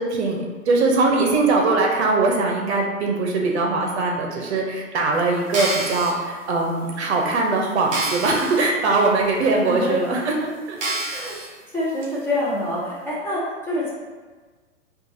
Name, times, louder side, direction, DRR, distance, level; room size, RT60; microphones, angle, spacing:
voice 1, 0.0-11.0, right 3 dB, 55° right, 0 dB, 0.8 m, -21 dB
sound 1, 5.4-6.1 6.8-6.9 7.3-7.4 7.9-8.6 9.0-9.1 9.9-10.0 10.8-11.5 12.0-12.1, right 2 dB, 30° right, 1.3 m, -27 dB
voice 2, 11.7-13.9, left 1 dB, 5° left, -9 dB, 0.8 m, -26 dB
4.5 x 2.4 x 2.7 m, 1.4 s
hypercardioid pair, 125°, 39 cm